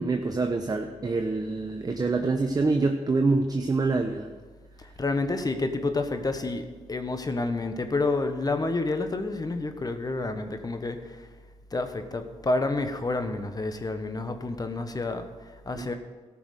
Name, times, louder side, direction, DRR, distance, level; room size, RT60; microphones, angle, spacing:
voice 1, 0.0-4.3 15.7-15.9, right 3 dB, 30° right, 5 dB, 0.9 m, -26 dB
voice 2, 4.8-11.3 11.7-16.0, left 3 dB, 30° left, 8 dB, 1.2 m, -29 dB
14.0 x 6.1 x 6.6 m, 1.4 s
cardioid pair, 60°, 12 cm